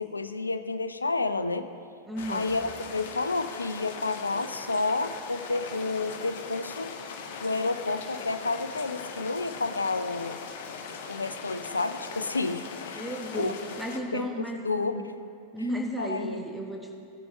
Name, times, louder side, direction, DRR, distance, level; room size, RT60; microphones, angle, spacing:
voice 1, 0.0-1.7 2.3-6.9 7.4-10.4 11.1-13.1 13.3-13.5 14.1-14.3 14.6-15.1 16.0-16.4, left 3 dB, 80° left, 11 dB, 0.4 m, -30 dB
voice 2, 2.1-2.5 12.9-14.6 15.0-15.1 15.5-16.9, right 1 dB, ahead, 1 dB, 1.1 m, -34 dB
sound 1, 2.2-14.0, left 5 dB, 55° left, 0.9 m, -40 dB
16.5 x 6.9 x 3.3 m, 2.6 s
figure-of-eight pair, 90°, 0 cm